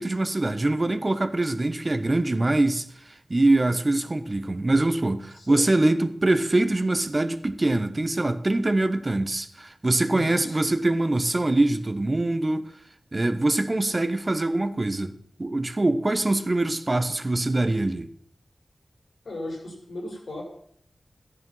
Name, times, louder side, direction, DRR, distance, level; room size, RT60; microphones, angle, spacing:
voice 1, 0.0-12.6 13.1-18.1, right 2 dB, 40° right, 1.2 m, -24 dB
voice 2, 5.3-5.7 10.1-10.6 19.2-20.4, left 2 dB, 85° left, 5.3 m, -36 dB
12.5 x 10.5 x 5.7 m
cardioid pair, 40°, 0 cm